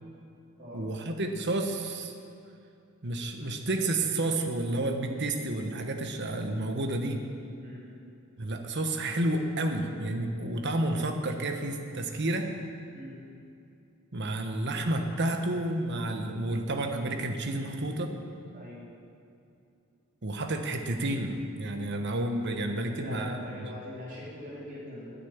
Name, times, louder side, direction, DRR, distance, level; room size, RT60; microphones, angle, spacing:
voice 1, 0.7-2.1 3.0-7.2 8.4-12.5 14.1-18.1 20.2-23.7, right 1 dB, 55° right, 5 dB, 1.2 m, -30 dB
voice 2, 18.5-18.9 22.8-25.1, left 1 dB, 35° right, -8 dB, 3.8 m, -42 dB
9.9 x 9.5 x 8.8 m, 2.6 s
head